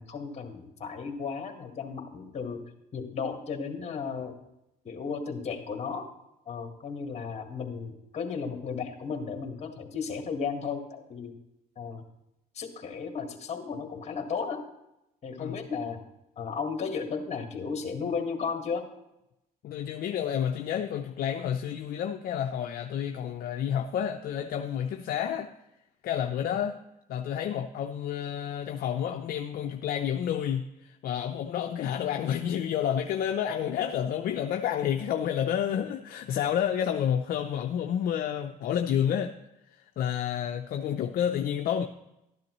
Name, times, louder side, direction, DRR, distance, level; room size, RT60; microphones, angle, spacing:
voice 1, 0.0-2.6 2.9-4.4 4.8-6.1 6.5-11.3 11.8-12.1 12.5-14.6 15.2-16.0 16.4-18.9, left 5 dB, 40° left, 4 dB, 1.8 m, -34 dB
voice 2, 19.6-25.5 26.0-26.8 27.1-39.3 40.0-41.8, left 9 dB, 60° left, 5 dB, 0.6 m, -30 dB
13.0 x 10.5 x 3.1 m, 0.87 s
cardioid pair, 110°, 17 cm